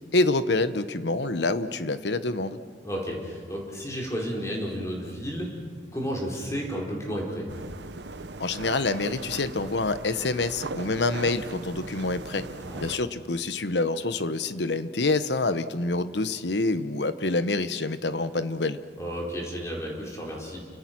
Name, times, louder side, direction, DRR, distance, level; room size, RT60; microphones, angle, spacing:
voice 1, 0.1-2.6 8.4-12.5 12.8-18.8, left 2 dB, 85° left, 12 dB, 1.1 m, -27 dB
voice 2, 2.8-5.6 5.9-7.5 12.6-12.8 19.0-20.6, equal, 15° left, -2 dB, 4.7 m, -32 dB
sound 1, 7.5-13.0, right 3 dB, 90° right, 1.0 m, -39 dB
30.0 x 26.0 x 6.2 m, 2.1 s
head